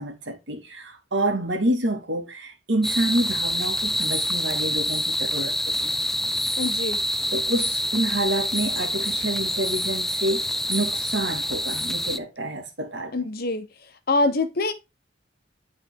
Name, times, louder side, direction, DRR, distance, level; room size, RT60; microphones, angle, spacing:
voice 1, 0.0-5.9 7.3-13.1, right 1 dB, 70° right, 2.1 m, -28 dB
sound 1, 2.8-12.2, left 1 dB, ahead, 0.4 m, -26 dB
voice 2, 6.6-7.0 13.1-14.7, left 2 dB, 55° left, 1.0 m, -25 dB
10.0 x 4.1 x 3.7 m
head